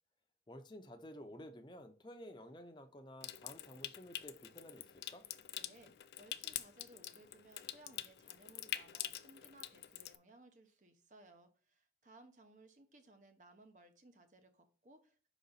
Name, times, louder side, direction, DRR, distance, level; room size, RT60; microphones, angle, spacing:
voice 1, 0.5-5.2, equal, 25° left, 6 dB, 0.6 m, -53 dB
Water tap faucet / Sink (filling or washing) / Trickle dribble, 3.2-10.2, left 12 dB, 65° left, 0.4 m, -46 dB
voice 2, 5.6-15.3, right 2 dB, 45° right, 7 dB, 0.8 m, -62 dB
5.7 x 4.1 x 4.1 m, 0.39 s
head